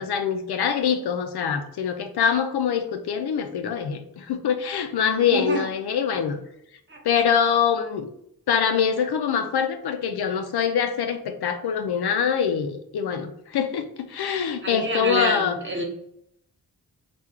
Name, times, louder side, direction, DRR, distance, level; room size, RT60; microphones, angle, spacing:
voice 1, 0.0-6.4 7.0-8.1 8.5-15.6, left 7 dB, 80° left, 7 dB, 0.6 m, -24 dB
voice 2, 5.3-5.6 6.9-7.0 14.6-15.8, right 1 dB, 30° right, 0 dB, 0.9 m, -27 dB
3.6 x 2.5 x 4.4 m, 0.74 s
wide cardioid pair, 165°, 38 cm